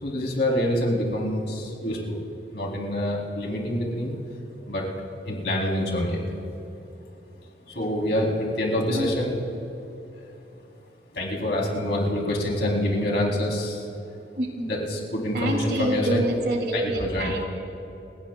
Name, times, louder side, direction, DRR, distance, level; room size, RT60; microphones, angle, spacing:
voice 1, 0.0-2.2 2.5-4.2 4.7-4.9 5.3-6.4 7.7-9.3 11.1-13.9 14.7-16.2 16.7-17.3, left 1 dB, 65° left, -1 dB, 3.2 m, -26 dB
voice 2, 15.3-17.4, right 1 dB, 60° right, 1 dB, 2.5 m, -27 dB
29.5 x 17.0 x 2.3 m, 2.9 s
head